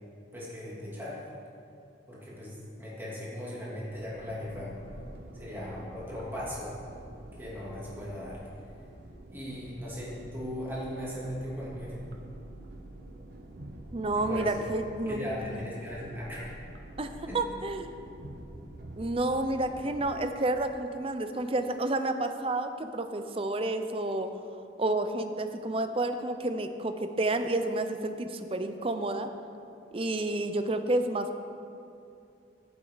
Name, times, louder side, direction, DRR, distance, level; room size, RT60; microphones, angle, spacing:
voice 1, 0.3-1.2 2.1-4.7 5.3-6.8 7.4-8.4 9.3-12.0 14.1-14.6 15.1-16.6 17.3-17.4, left 1 dB, 10° right, -7 dB, 2.9 m, -38 dB
sound 1, 3.9-20.5, right 1 dB, 55° right, 0.9 m, -47 dB
voice 2, 13.9-15.7 17.0-17.9 19.0-24.3 24.8-29.3 29.9-31.4, right 2 dB, 30° right, 8 dB, 0.6 m, -30 dB
15.0 x 8.0 x 4.0 m, 2.6 s
head